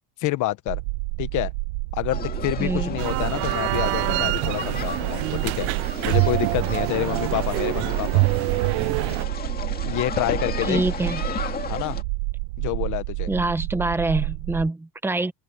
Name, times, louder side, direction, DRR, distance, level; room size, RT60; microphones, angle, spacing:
voice 1, 0.2-0.8 1.2-1.5 1.9-5.7 6.0-8.3 9.9-10.8 11.7-12.0 12.6-13.3, left 16 dB, 45° left, 1.2 m, -28 dB
sound 1, 0.7-14.7, right 23 dB, 90° right, 1.6 m, -30 dB
sound 2, 2.1-12.0, left 6 dB, 20° left, 2.2 m, -34 dB
voice 2, 2.6-2.9 10.6-11.2 13.3-15.3, right 2 dB, 5° right, 1.0 m, -25 dB
sound 3, 3.0-9.2, right 26 dB, 60° right, 0.6 m, -25 dB
cardioid pair, 160°, 43 cm